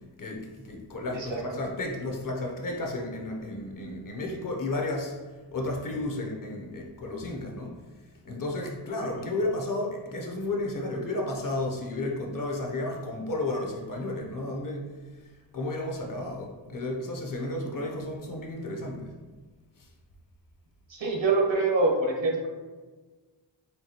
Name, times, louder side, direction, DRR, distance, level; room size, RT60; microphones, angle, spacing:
voice 1, 0.2-5.2 5.5-7.7 8.2-14.9 15.5-19.1, left 2 dB, 45° left, 0 dB, 0.6 m, -32 dB
voice 2, 20.9-22.5, right 3 dB, 75° right, 0 dB, 1.0 m, -25 dB
4.4 x 3.1 x 2.8 m, 1.3 s
wide cardioid pair, 180°, 46 cm